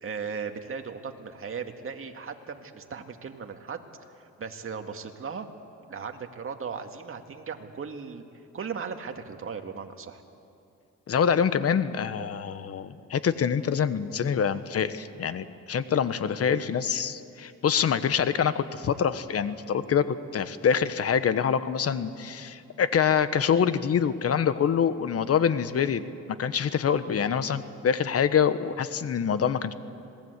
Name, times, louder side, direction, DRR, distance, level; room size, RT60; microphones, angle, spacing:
voice 1, 0.0-3.9 4.4-5.5 5.9-8.2 8.5-10.2, right 6 dB, 45° right, 5 dB, 2.1 m, -37 dB
voice 2, 11.1-29.7, left 7 dB, 50° left, 13 dB, 1.2 m, -25 dB
26.5 x 19.5 x 8.2 m, 2.6 s
cardioid pair, 90°, 30 cm